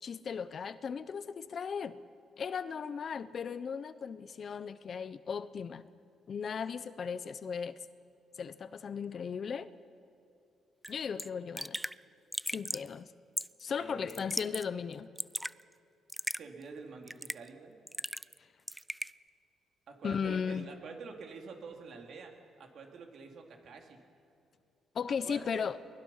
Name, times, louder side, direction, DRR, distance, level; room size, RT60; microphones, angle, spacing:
voice 1, 0.0-2.0 2.4-5.8 6.3-7.8 8.4-9.7 10.9-11.8 12.5-13.1 13.6-15.1 20.0-20.7 24.9-25.8, left 6 dB, 50° left, 14 dB, 0.8 m, -36 dB
Raindrop / Drip, 10.8-10.9 11.2-11.3 11.6-11.9 12.3-12.9 13.4-13.6 14.1-14.6 14.9-15.5 16.1-16.4 17.1-17.5 17.9-18.4 18.7-19.1, right 1 dB, 5° right, 0.4 m, -37 dB
voice 2, 13.8-14.2 16.4-17.8 19.9-24.0 25.2-25.6, right 4 dB, 65° right, 2 dB, 3.2 m, -47 dB
23.5 x 20.0 x 5.8 m, 2.7 s
cardioid pair, 90°, 0 cm